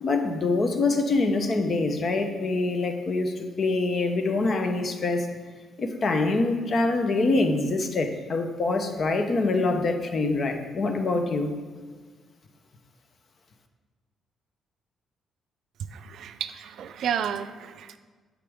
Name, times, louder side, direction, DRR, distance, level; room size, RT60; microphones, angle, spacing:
voice 1, 0.0-5.3 5.8-11.5, left 3 dB, 50° left, 6 dB, 0.8 m, -25 dB
voice 2, 15.9-18.0, right 8 dB, 70° right, 11 dB, 0.4 m, -32 dB
8.4 x 5.0 x 3.5 m, 1.5 s
cardioid pair, 90°, 0 cm